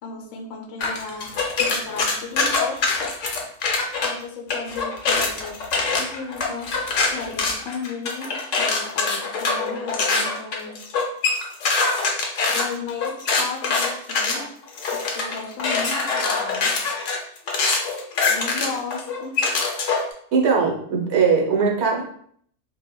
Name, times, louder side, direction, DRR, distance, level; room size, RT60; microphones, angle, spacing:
voice 1, 0.0-3.0 4.0-6.7 7.1-10.9 12.5-14.5 14.9-16.7 18.3-19.5, left 4 dB, 65° left, 2 dB, 0.8 m, -35 dB
sound 1, 0.8-4.1 4.5-20.1, left 4 dB, 90° left, 1.1 m, -23 dB
voice 2, 20.3-22.0, right 5 dB, 65° right, -1 dB, 1.0 m, -20 dB
5.2 x 2.2 x 2.2 m, 0.62 s
omnidirectional pair, 1.3 m